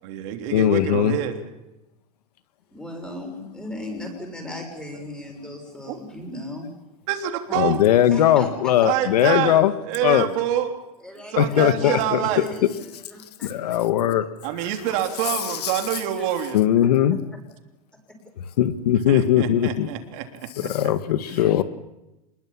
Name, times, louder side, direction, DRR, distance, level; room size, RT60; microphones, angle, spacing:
voice 1, 0.0-1.5 5.9-6.0 7.1-7.8 8.8-9.6 9.8-10.7 11.3-12.5 14.4-16.6 19.1-20.2 20.6-20.7, right 11 dB, 50° right, 5 dB, 3.3 m, -26 dB
voice 2, 0.5-1.2 7.6-9.7 10.0-10.3 11.4-12.2 13.4-14.3 15.6-15.7 16.5-17.2 18.6-19.9 20.6-21.6, left 11 dB, 80° left, 11 dB, 1.9 m, -19 dB
voice 3, 2.7-6.7 7.5-7.6 8.1-9.0 11.0-13.8 16.1-16.2 16.8-17.2 21.4-21.5, left 1 dB, 5° left, 2 dB, 6.5 m, -36 dB
25.5 x 21.5 x 7.4 m, 0.97 s
supercardioid pair, 145°, 20 cm